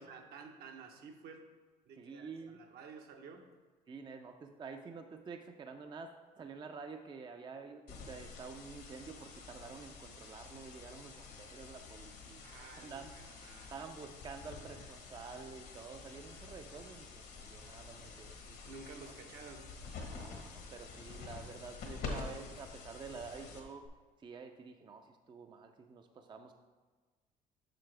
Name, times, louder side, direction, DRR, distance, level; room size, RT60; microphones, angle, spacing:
voice 1, 0.0-1.5 1.9-3.5 12.4-13.8 18.6-19.7, right 5 dB, 70° right, 3 dB, 0.9 m, -52 dB
voice 2, 2.0-2.6 3.9-6.1 6.4-12.5 12.8-13.1 13.7-18.6 20.1-23.9 24.2-26.5, right 5 dB, 25° right, 5 dB, 0.4 m, -49 dB
sound 1, 7.9-23.9, left 4 dB, 70° left, 1.3 m, -48 dB
7.6 x 5.8 x 3.3 m, 1.4 s
cardioid pair, 110°, 17 cm